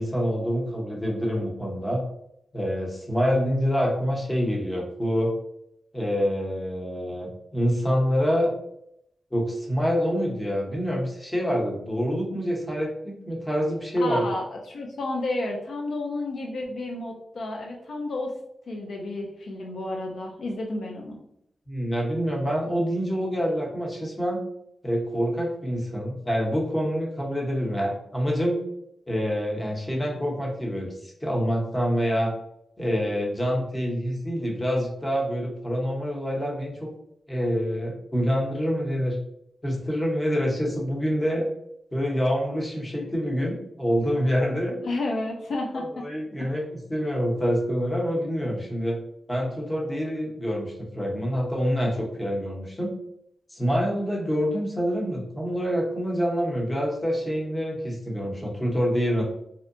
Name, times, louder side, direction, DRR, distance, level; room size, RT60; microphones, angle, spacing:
voice 1, 0.0-2.0 2.5-5.3 5.9-8.5 9.3-14.2 21.7-24.4 24.8-28.6 29.1-32.3 32.8-36.9 37.3-39.2 39.6-41.4 41.9-44.8 45.7-49.0 49.3-53.0 53.5-59.2, equal, 20° left, -2 dB, 0.8 m, -26 dB
voice 2, 14.0-18.3 18.7-21.2 44.8-46.0 46.4-46.5, left 2 dB, 75° left, 0 dB, 0.4 m, -31 dB
2.7 x 2.1 x 2.5 m, 0.76 s
cardioid pair, 70°, 0 cm